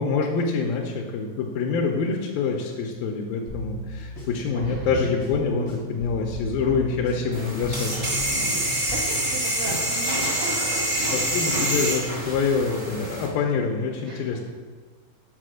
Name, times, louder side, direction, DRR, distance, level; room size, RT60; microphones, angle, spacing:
voice 1, 0.0-8.1 11.1-14.4, left 5 dB, 75° left, 0 dB, 2.3 m, -26 dB
sound 1, 3.5-9.1, left 1 dB, 60° left, 1.0 m, -36 dB
voice 2, 4.6-4.9 8.4-12.0 14.1-14.4, right 3 dB, 80° right, -3 dB, 1.8 m, -38 dB
sound 2, 7.3-13.3, right 1 dB, 40° right, 0.8 m, -26 dB
7.5 x 5.1 x 6.3 m, 1.4 s
omnidirectional pair, 4.8 m